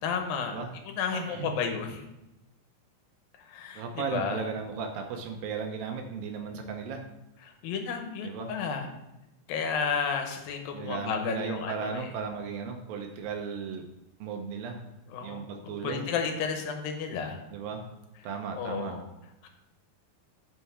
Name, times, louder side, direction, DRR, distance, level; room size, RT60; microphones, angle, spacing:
voice 1, 0.0-0.6 0.8-2.0 3.5-4.4 7.4-8.9 9.5-12.1 15.1-15.4 15.8-17.4 18.5-19.0 19.4-19.5, left 6 dB, 75° left, 5 dB, 2.7 m, -32 dB
voice 2, 1.1-1.5 3.8-7.0 8.2-8.5 10.7-13.8 14.2-14.8 15.2-16.1 17.5-17.9 18.2-18.9, right 5 dB, 80° right, 4 dB, 2.5 m, -36 dB
8.0 x 5.6 x 5.6 m, 0.95 s
omnidirectional pair, 4.2 m